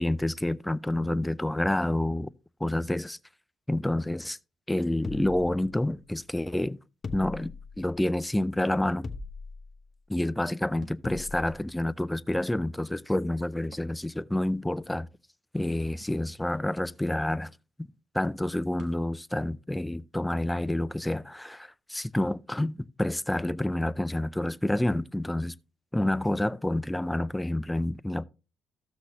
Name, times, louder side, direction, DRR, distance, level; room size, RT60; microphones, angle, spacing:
voice 1, 0.0-2.3 2.6-3.2 3.7-4.4 4.7-6.8 7.1-9.1 10.1-15.1 15.5-17.5 17.8-25.5 25.9-28.2, left 1 dB, 10° left, 0.4 m, -28 dB
sound 1, 5.0-6.2 7.0-7.9 9.0-9.7 11.0-11.5, left 4 dB, 35° left, 0.8 m, -40 dB
Thump thud, 10.8-11.1 12.1-12.2 13.6-13.9 14.4-14.5 16.0-16.2 17.0-17.1 17.3-17.5 18.8-19.1, right 6 dB, 65° right, 1.2 m, -52 dB
14.5 x 6.2 x 2.7 m
cardioid pair, 90°, 0 cm